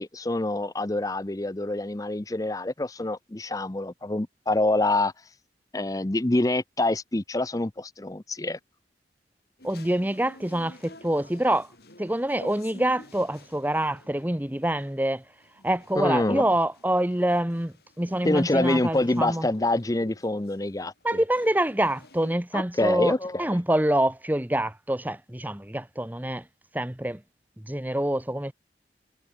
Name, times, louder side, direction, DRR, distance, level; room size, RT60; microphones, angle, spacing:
voice 1, 0.0-5.1 5.7-8.6 16.0-16.4 18.2-21.2 22.5-23.5, left 2 dB, 20° left, 0.6 m, -26 dB
sound 1, 9.6-22.3, left 2 dB, 60° left, 7.9 m, -49 dB
voice 2, 9.6-11.7 12.0-15.2 15.6-19.5 21.0-26.4 26.7-27.2 27.6-28.5, right 1 dB, 10° right, 1.0 m, -26 dB
head